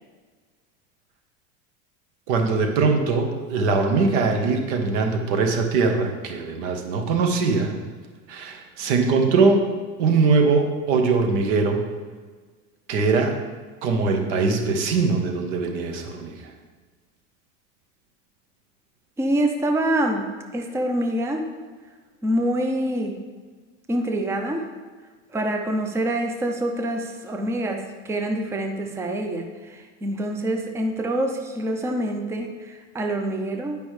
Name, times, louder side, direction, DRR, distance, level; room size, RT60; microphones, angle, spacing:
voice 1, 2.3-7.7 8.3-9.6 10.0-11.8 12.9-13.3 13.8-16.4, right 4 dB, 80° right, 4 dB, 1.2 m, -21 dB
voice 2, 19.2-21.4 22.2-23.2 23.9-24.7 25.3-33.8, right 1 dB, 10° right, 4 dB, 0.5 m, -26 dB
9.9 x 5.2 x 3.2 m, 1.4 s
supercardioid pair, 130°, 36 cm